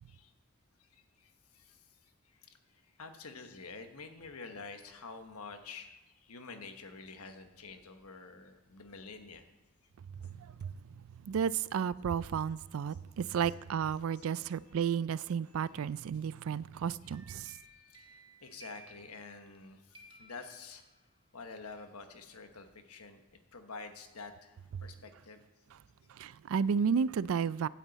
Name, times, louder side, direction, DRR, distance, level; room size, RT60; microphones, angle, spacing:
voice 1, 0.8-9.4 12.9-13.0 14.1-14.5 15.5-15.8 16.1-16.2 17.0-17.2 17.6-20.8 21.3-25.4, left 4 dB, 85° left, 1.2 m, -49 dB
voice 2, 10.4-10.7 11.3-17.5 26.2-27.7, right 7 dB, 70° right, 0.3 m, -32 dB
sound 1, 16.8-19.6 19.9-21.2, right 2 dB, 20° right, 1.1 m, -57 dB
15.5 x 9.1 x 4.1 m
head